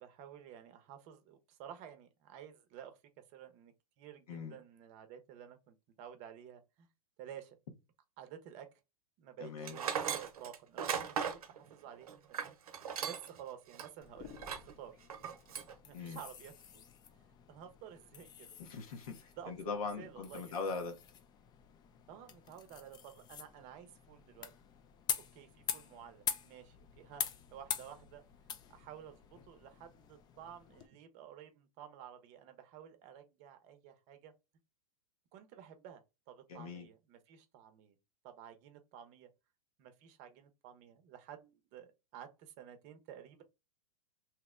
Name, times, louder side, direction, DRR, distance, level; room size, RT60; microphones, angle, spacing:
voice 1, 0.0-3.0 3.3-6.9 7.2-7.6 8.2-8.7 9.2-12.5 13.0-15.0 15.8-16.8 17.5-18.6 19.3-19.5 20.0-20.6 22.1-24.5 25.3-28.2 28.7-34.3 35.3-36.0 36.3-38.0 38.2-39.3 39.8-43.4, right 9 dB, 40° right, 0.7 m, -52 dB
voice 2, 4.3-4.6 9.4-9.8 15.9-16.2 18.6-21.0 36.5-36.9, left 4 dB, 80° left, 1.0 m, -41 dB
Tools, 9.6-13.4 13.7-13.9 14.4-14.7 15.1-15.7, right 7 dB, 80° right, 0.7 m, -38 dB
sound 1, 14.0-30.9, left 8 dB, 20° left, 0.3 m, -45 dB
2.9 x 2.0 x 3.5 m
hypercardioid pair, 125°, 19 cm